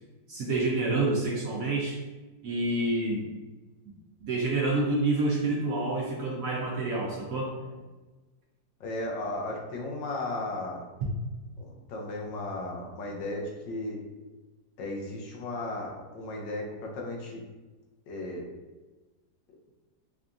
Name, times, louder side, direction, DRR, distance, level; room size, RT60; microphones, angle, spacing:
voice 1, 0.3-2.0 2.4-3.3 3.9-4.0 4.2-7.5, right 2 dB, 65° right, -3 dB, 0.9 m, -28 dB
voice 2, 8.8-10.9 11.6-14.0 14.8-17.4 18.1-18.5, left 2 dB, 80° left, -1 dB, 1.5 m, -35 dB
5.7 x 2.3 x 2.5 m, 1.2 s
omnidirectional pair, 1.9 m